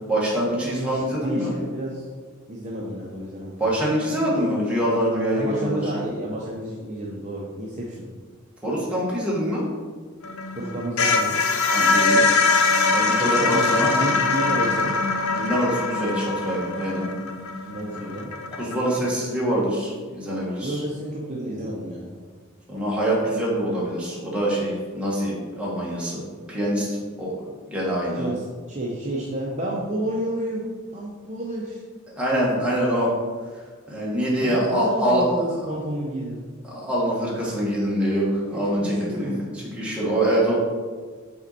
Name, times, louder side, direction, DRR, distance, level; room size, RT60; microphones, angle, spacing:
voice 1, 0.1-1.5 3.6-5.8 8.6-9.7 11.7-12.2 12.9-13.9 15.3-17.1 18.6-20.8 22.7-26.2 26.5-27.4 27.7-28.3 32.1-33.1 33.9-35.2 36.7-39.3 39.7-40.5, equal, 5° right, -6 dB, 1.4 m, -24 dB
voice 2, 0.7-2.1 2.5-3.6 5.3-8.1 10.5-11.4 13.2-14.9 17.6-18.3 20.6-22.2 28.1-31.8 34.4-36.4 38.5-39.5, right 1 dB, 35° right, -4 dB, 0.7 m, -30 dB
sound 1, 10.2-19.1, left 3 dB, 85° left, 0.7 m, -22 dB
5.6 x 4.4 x 4.1 m, 1.5 s
head